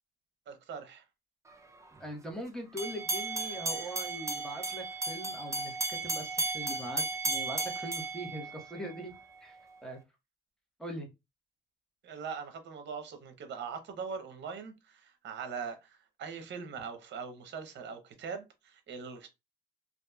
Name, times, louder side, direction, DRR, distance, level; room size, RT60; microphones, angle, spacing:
voice 1, 0.5-1.0 12.0-19.3, right 6 dB, 65° right, 0.8 m, -41 dB
voice 2, 2.0-9.1 9.4-9.6 9.8-10.0 10.8-11.1, equal, 5° left, 1.1 m, -41 dB
sound 1, 2.8-9.0, right 3 dB, 15° right, 0.5 m, -34 dB
2.8 x 2.4 x 2.3 m
cardioid pair, 90°, 20 cm